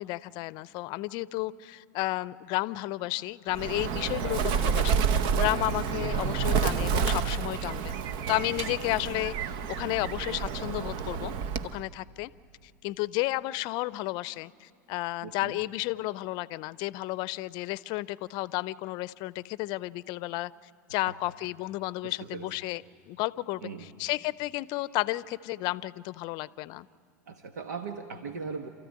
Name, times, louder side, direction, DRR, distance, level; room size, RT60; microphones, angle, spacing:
voice 1, 0.0-8.0 8.3-11.3 11.7-12.3 12.8-20.5 20.9-22.8 23.1-26.9, left 19 dB, 55° left, 18 dB, 0.6 m, -32 dB
Bird, 3.5-11.8, right 7 dB, 55° right, 0.9 m, -29 dB
voice 2, 15.2-15.6 21.1-21.2 22.0-22.5 23.6-23.9 27.3-28.7, right 5 dB, 90° right, 6 dB, 1.2 m, -39 dB
28.5 x 14.5 x 9.6 m, 2.6 s
hypercardioid pair, 105°, 9 cm